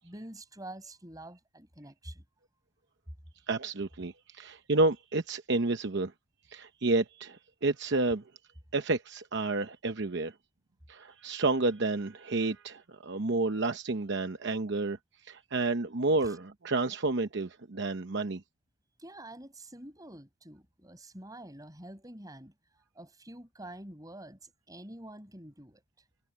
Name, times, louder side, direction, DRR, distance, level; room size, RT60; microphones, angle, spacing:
voice 1, 0.0-2.2 16.2-16.3 19.0-22.5 23.0-25.8, right 1 dB, 20° right, 6.9 m, -47 dB
voice 2, 3.5-6.1 6.5-8.2 8.7-10.3 10.9-18.4, right 3 dB, 60° right, 0.9 m, -30 dB
head